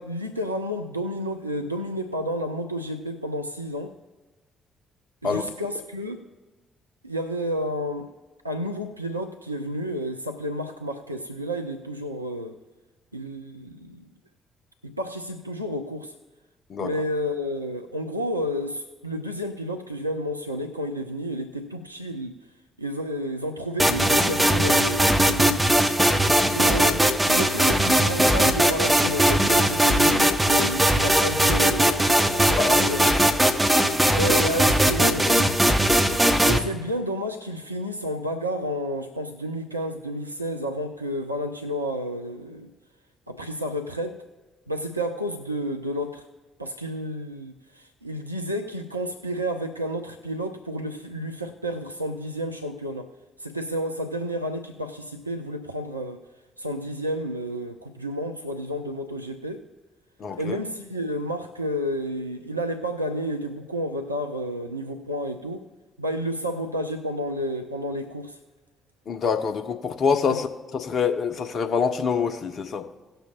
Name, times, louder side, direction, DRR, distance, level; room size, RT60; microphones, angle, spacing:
voice 1, 0.0-4.0 5.2-6.3 7.0-8.1 8.4-12.6 13.1-14.1 14.8-16.1 16.8-22.4 22.8-25.7 26.5-33.3 34.1-35.5 36.5-42.7 43.3-44.2 44.7-46.3 46.6-53.1 53.4-56.2 56.6-59.6 60.4-65.7 66.0-68.4 70.3-70.4, equal, 90° right, 4 dB, 0.4 m, -31 dB
sound 1, 23.8-36.6, right 1 dB, 10° right, 1.0 m, -20 dB
voice 2, 26.4-26.7 32.6-33.1 60.2-60.6 69.1-70.5 70.7-72.9, left 5 dB, 50° left, 6 dB, 0.9 m, -26 dB
18.0 x 6.6 x 2.4 m, 1.2 s
figure-of-eight pair, 45°, 0 cm